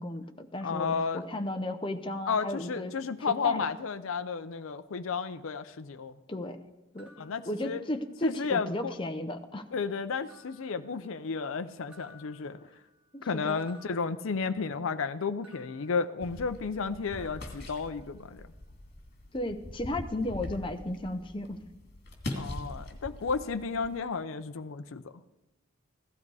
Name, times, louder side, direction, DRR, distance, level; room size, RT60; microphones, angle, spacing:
voice 1, 0.0-3.7 6.3-6.6 6.9-9.6 13.1-13.6 19.3-21.6, left 1 dB, 25° left, 6 dB, 0.8 m, -35 dB
voice 2, 0.6-1.2 2.3-6.2 7.2-7.8 8.2-8.9 9.7-12.7 13.2-18.4 22.3-25.0, left 5 dB, 70° left, 9 dB, 0.5 m, -32 dB
sound 1, 7.0-8.3 8.7-9.4 10.3-11.5 11.9-14.8 15.4-16.8 17.1-18.4, left 1 dB, 5° right, 2.4 m, -59 dB
sound 2, 16.2-24.0, left 1 dB, 45° left, 2.5 m, -42 dB
16.0 x 12.5 x 4.8 m, 1.0 s
head